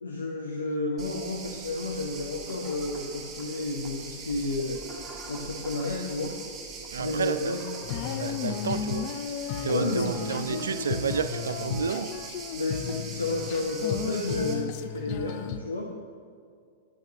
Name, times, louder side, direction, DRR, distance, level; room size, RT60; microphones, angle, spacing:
voice 1, 0.0-4.8 5.3-6.4 7.0-7.6 9.7-10.8 12.5-15.9, left 2 dB, 85° left, 0.7 m, -31 dB
sound 1, 1.0-14.5, right 5 dB, 25° right, 2.1 m, -42 dB
sound 2, 2.2-11.8, equal, 20° left, 1.6 m, -47 dB
voice 2, 6.9-7.6 8.2-9.1 9.6-12.2, right 6 dB, 75° right, 0.3 m, -31 dB
Female singing, 7.8-15.6, left 9 dB, 50° left, 0.4 m, -34 dB
9.9 x 8.0 x 2.8 m
figure-of-eight pair, 100°, 0 cm